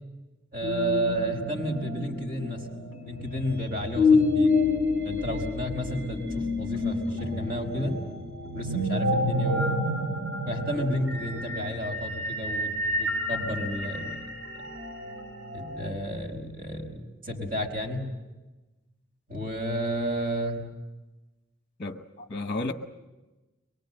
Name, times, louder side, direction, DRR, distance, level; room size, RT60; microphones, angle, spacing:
voice 1, 0.5-2.7 3.0-4.6 5.0-8.0 8.5-9.9 10.5-12.7 13.0-14.2 14.6-14.7 15.5-18.0 19.3-20.6, equal, 45° right, 4.8 m, -31 dB
sound 1, 0.6-15.9, left 2 dB, 60° right, 4.8 m, -29 dB
voice 2, 21.8-22.7, left 2 dB, 35° left, 0.9 m, -32 dB
23.5 x 23.0 x 7.8 m
head